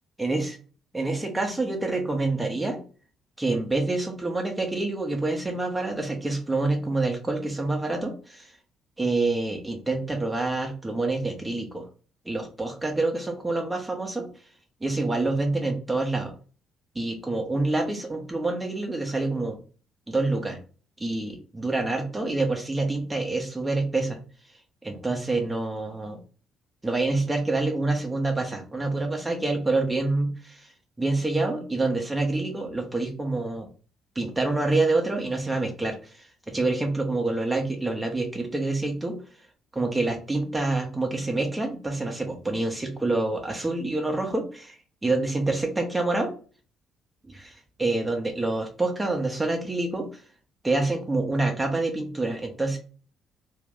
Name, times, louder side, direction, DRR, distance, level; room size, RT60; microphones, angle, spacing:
voice 1, 0.2-0.5 0.9-2.8 3.4-8.5 9.0-11.9 12.2-14.3 14.8-16.3 16.9-19.6 20.1-20.6 21.0-24.2 24.8-26.2 26.8-30.7 31.0-33.7 34.1-39.2 39.7-44.8 45.0-46.3 47.3-47.5 47.8-50.1 50.6-52.8, right 2 dB, 20° right, 3 dB, 1.1 m, -27 dB
2.9 x 2.7 x 3.5 m, 0.37 s
hypercardioid pair, 50°, 0 cm